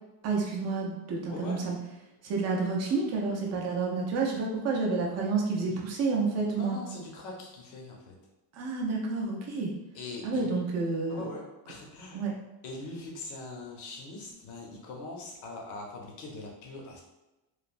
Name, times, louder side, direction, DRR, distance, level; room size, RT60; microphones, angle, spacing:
voice 1, 0.2-1.8 2.2-6.8 8.5-9.7 10.2-11.2 12.1-12.3, right 4 dB, 35° right, -1 dB, 0.4 m, -29 dB
voice 2, 1.3-1.6 5.6-5.8 6.5-8.1 9.9-10.5 11.1-12.2 12.6-17.0, left 2 dB, 45° left, 0 dB, 0.5 m, -42 dB
3.1 x 2.0 x 2.4 m, 1.0 s
cardioid pair, 180°, 45 cm